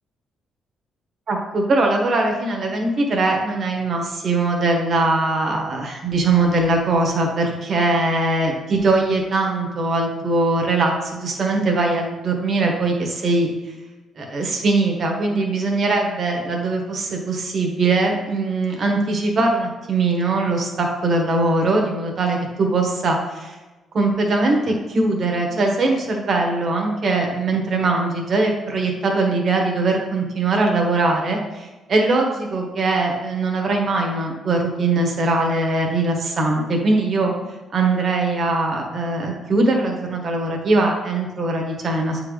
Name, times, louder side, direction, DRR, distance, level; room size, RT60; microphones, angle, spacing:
voice 1, 1.3-13.5 14.2-23.5 23.9-37.3 37.7-42.2, right 2 dB, 40° right, 1 dB, 1.2 m, -21 dB
8.6 x 3.9 x 3.3 m, 1.2 s
cardioid pair, 150°, 0 cm